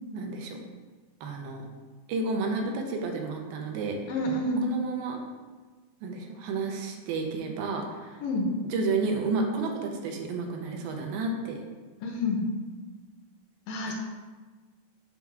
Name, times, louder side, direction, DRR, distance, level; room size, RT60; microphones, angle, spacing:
voice 1, 0.1-0.6 1.2-1.6 2.1-4.0 4.6-5.2 6.0-8.2 8.6-11.6, right 3 dB, 80° right, 2 dB, 2.4 m, -31 dB
voice 2, 4.1-4.6 8.2-8.5 12.0-12.5 13.7-13.9, left 1 dB, 80° left, 2 dB, 2.1 m, -28 dB
7.1 x 3.5 x 5.9 m, 1.4 s
omnidirectional pair, 4.3 m